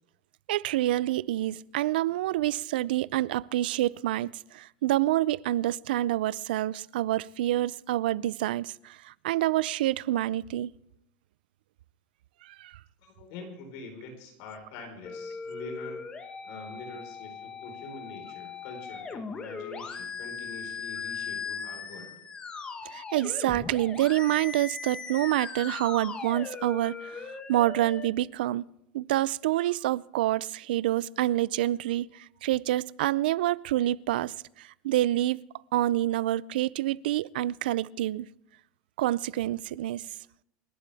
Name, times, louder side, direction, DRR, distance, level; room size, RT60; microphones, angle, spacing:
voice 1, 0.5-10.7 12.4-12.8 22.8-28.6 28.9-35.4 35.7-38.3 39.0-40.0, right 14 dB, 90° right, 0.4 m, -27 dB
voice 2, 13.0-16.0 16.4-22.1, left 3 dB, 55° left, 4.6 m, -44 dB
sound 1, 15.1-28.1, left 5 dB, 20° left, 1.2 m, -39 dB
28.0 x 11.5 x 3.5 m
supercardioid pair, 160°, 5 cm